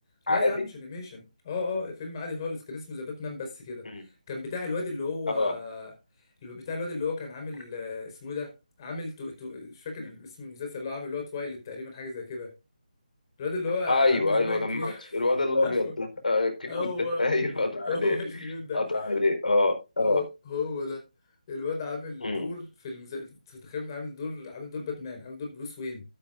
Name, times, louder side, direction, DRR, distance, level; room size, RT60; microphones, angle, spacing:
voice 1, 0.3-5.9 6.4-8.5 8.8-12.5 13.4-15.2 15.6-15.9 16.7-17.3 17.9-19.2 20.0-21.0 21.5-26.0, left 3 dB, 30° left, 4.8 m, -35 dB
voice 2, 13.9-16.9 17.2-18.2 18.7-20.2 22.2-22.5, left 2 dB, 80° left, 4.7 m, -25 dB
12.5 x 12.5 x 2.6 m
figure-of-eight pair, 160°, 4 cm